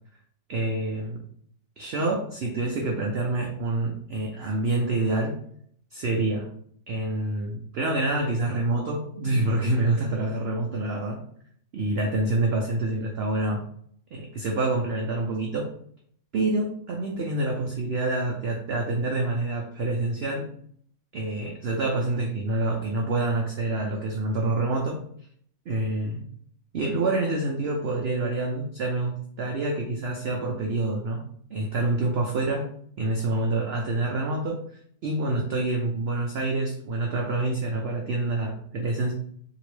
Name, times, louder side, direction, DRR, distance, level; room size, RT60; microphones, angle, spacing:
voice 1, 0.5-1.2 1.8-5.4 5.9-6.5 6.9-11.2 11.7-13.6 14.1-15.7 16.3-20.4 21.1-25.0 25.7-26.2 26.7-31.2 31.5-32.7 33.0-39.1, right 2 dB, 70° right, 1 dB, 0.5 m, -27 dB
2.9 x 2.8 x 3.1 m, 0.62 s
omnidirectional pair, 1.6 m